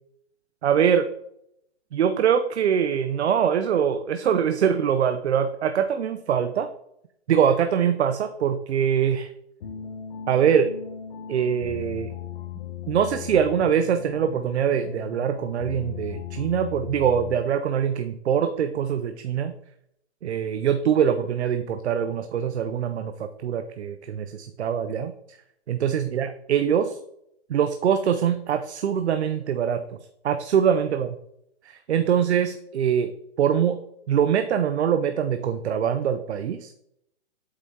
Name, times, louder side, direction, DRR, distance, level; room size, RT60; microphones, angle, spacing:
voice 1, 0.6-1.1 1.9-6.7 7.3-9.3 10.3-10.7 11.3-12.1 12.9-19.5 20.2-25.4 25.7-27.0 27.5-30.0 30.2-31.1 31.6-33.1 33.4-33.8 34.1-36.7, right 8 dB, 75° right, 8 dB, 0.6 m, -23 dB
sound 1, 9.6-17.7, left 8 dB, 45° left, 0.9 m, -37 dB
8.0 x 5.6 x 2.8 m, 0.76 s
hypercardioid pair, 145°, 34 cm